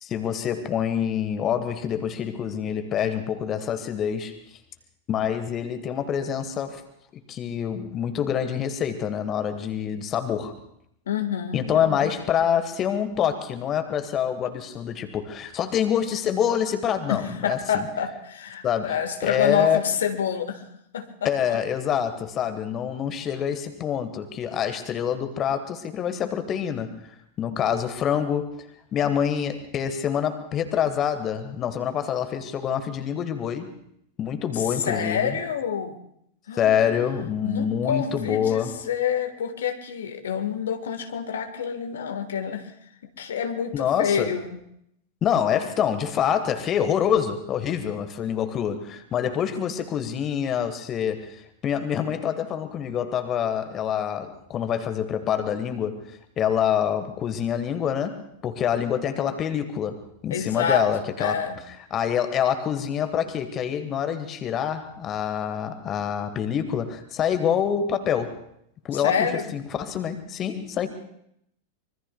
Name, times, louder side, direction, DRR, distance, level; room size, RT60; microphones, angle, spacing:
voice 1, 0.0-4.4 5.1-6.8 7.3-10.6 11.5-17.9 18.6-19.0 19.2-19.8 21.2-27.0 27.4-28.5 28.9-33.7 34.2-35.4 36.5-38.8 43.7-44.3 45.2-56.0 56.4-61.5 61.9-68.4 68.8-69.3 69.5-70.9, left 8 dB, 30° left, 9 dB, 1.3 m, -26 dB
voice 2, 11.1-12.1 17.1-20.6 20.9-21.6 34.8-36.0 36.5-37.2 37.4-42.7 43.2-44.6 60.3-60.8 61.2-61.6 68.9-69.5, left 7 dB, 65° left, 7 dB, 1.5 m, -28 dB
25.0 x 23.5 x 2.3 m, 0.72 s
figure-of-eight pair, 90°, 0 cm